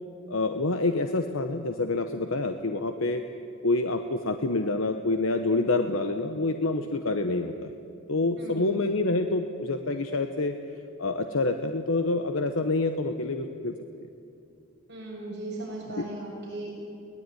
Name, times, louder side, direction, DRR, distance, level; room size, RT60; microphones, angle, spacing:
voice 1, 0.3-3.2 3.6-7.7 8.1-10.5 11.0-13.7 16.0-16.1, left 2 dB, 80° left, 6 dB, 1.1 m, -27 dB
voice 2, 8.4-8.7 14.9-16.7, right 2 dB, 55° right, -3 dB, 6.9 m, -37 dB
22.5 x 18.5 x 9.2 m, 2.6 s
head